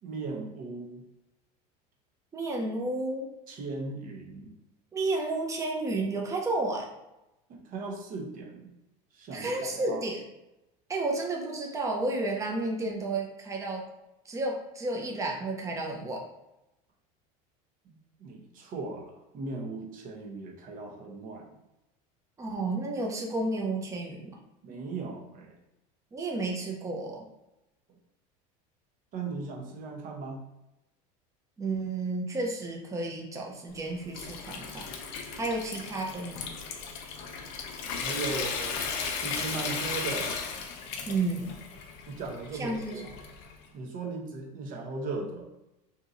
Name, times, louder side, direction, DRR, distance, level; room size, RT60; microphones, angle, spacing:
voice 1, 0.0-1.0 3.5-4.5 7.5-8.7 9.1-10.0 18.2-21.5 24.6-25.5 29.1-30.4 38.0-38.9 39.2-40.3 42.1-43.1 43.7-45.5, right 3 dB, 45° right, 1 dB, 0.9 m, -37 dB
voice 2, 2.3-3.3 4.9-6.9 9.3-10.2 10.9-13.8 14.2-16.2 22.4-24.3 26.1-27.3 31.6-34.9 35.4-36.5 41.1-41.5 42.6-43.0, right 2 dB, 15° right, -1 dB, 0.7 m, -31 dB
Water tap faucet / Sink (filling or washing) / Trickle dribble, 33.7-43.6, left 5 dB, 65° left, 0.7 m, -36 dB
2.8 x 2.8 x 3.7 m, 0.93 s
supercardioid pair, 130°, 19 cm